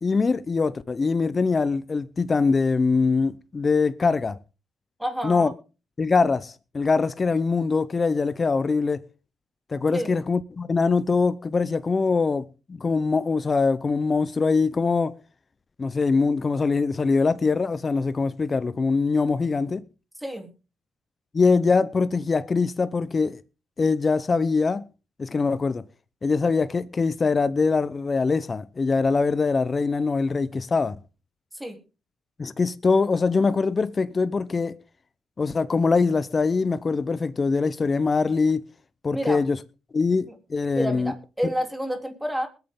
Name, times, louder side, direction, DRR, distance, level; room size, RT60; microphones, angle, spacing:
voice 1, 0.0-4.4 5.2-5.5 6.0-9.0 9.7-15.1 15.8-19.8 21.3-23.4 23.8-24.8 25.2-25.8 26.2-31.0 32.4-34.8 35.4-38.6 39.0-39.6 39.9-41.1, left 4 dB, 30° left, 0.8 m, -23 dB
voice 2, 5.0-5.5 9.9-10.1 20.2-20.5 31.5-31.8 39.1-39.4 40.7-42.5, equal, 5° right, 3.3 m, -29 dB
21.0 x 9.3 x 3.8 m
cardioid pair, 90°, 0 cm